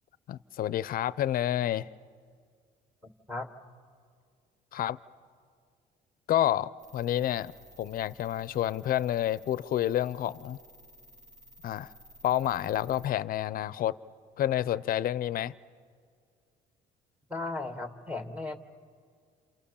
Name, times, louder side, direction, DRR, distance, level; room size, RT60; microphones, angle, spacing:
voice 1, 0.3-1.9 4.7-5.0 6.3-7.5 7.8-10.6 11.6-11.9 12.2-14.0 14.4-15.5, left 12 dB, 60° left, 0.7 m, -29 dB
voice 2, 3.0-3.5 17.3-18.6, left 2 dB, 10° right, 2.2 m, -36 dB
sound 1, 6.8-13.1, equal, 40° right, 2.2 m, -55 dB
29.0 x 28.0 x 7.2 m
cardioid pair, 110°, 17 cm